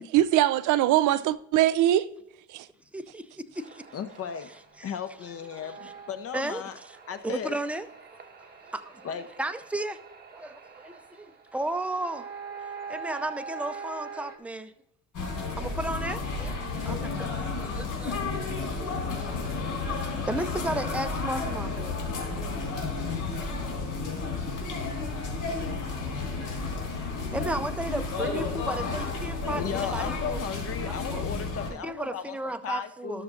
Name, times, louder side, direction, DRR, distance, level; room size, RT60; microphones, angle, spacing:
voice 1, 0.1-2.1 2.5-2.7, right 13 dB, 70° right, 0.5 m, -22 dB
voice 2, 2.9-3.9 4.4-5.9 6.3-7.0 7.2-8.2 8.6-10.0 10.3-12.3 12.9-14.7 15.6-22.0 22.6-23.2 24.7-24.8 27.3-30.4 30.9-33.2, right 1 dB, 5° right, 0.5 m, -35 dB
sound 1, 3.5-14.4, right 6 dB, 30° right, 1.2 m, -44 dB
voice 3, 3.9-4.5 4.8-6.7 7.1-7.5 9.0-9.2 29.5-32.2 32.6-33.2, left 8 dB, 45° left, 0.7 m, -35 dB
sound 2, 15.1-31.7, left 4 dB, 70° left, 3.5 m, -32 dB
13.0 x 6.5 x 2.4 m
cardioid pair, 95°, 32 cm